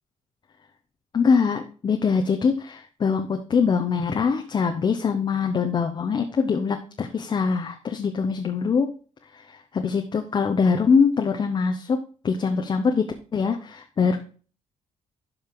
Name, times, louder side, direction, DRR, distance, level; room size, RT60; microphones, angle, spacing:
voice 1, 1.1-8.9 9.5-12.0 12.2-13.0 13.3-14.2, left 5 dB, 40° left, 4 dB, 1.0 m, -23 dB
12.0 x 5.1 x 3.8 m, 0.39 s
cardioid pair, 135°, 12 cm